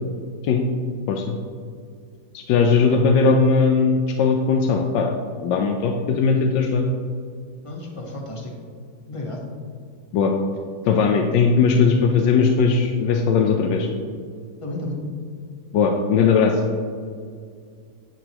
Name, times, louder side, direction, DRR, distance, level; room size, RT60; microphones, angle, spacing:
voice 1, 2.3-5.1 5.4-6.9 10.1-10.3 10.8-13.9 15.7-16.6, left 5 dB, 75° left, 2 dB, 1.3 m, -18 dB
voice 2, 7.6-8.5 9.1-9.4 14.6-15.0, left 2 dB, 20° left, -1 dB, 1.0 m, -32 dB
10.0 x 7.8 x 3.0 m, 2.2 s
omnidirectional pair, 2.1 m